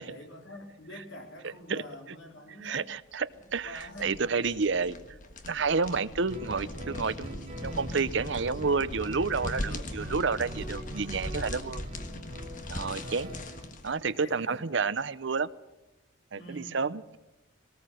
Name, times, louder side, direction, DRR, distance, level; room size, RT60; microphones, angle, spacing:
voice 1, 0.0-2.9 3.4-4.2 5.8-6.3 10.6-11.2 12.9-13.4 14.0-14.6 16.4-16.9, left 1 dB, 65° left, 2 dB, 4.3 m, -47 dB
voice 2, 2.6-5.0 5.5-11.8 12.7-13.3 13.8-15.5 16.3-17.2, right 4 dB, 60° right, 15 dB, 0.7 m, -30 dB
sound 1, 3.3-14.0, left 1 dB, 40° left, 1.5 m, -40 dB
Guitar, 6.3-13.8, equal, 30° right, 5.3 m, -43 dB
18.5 x 18.5 x 7.8 m, 1.0 s
head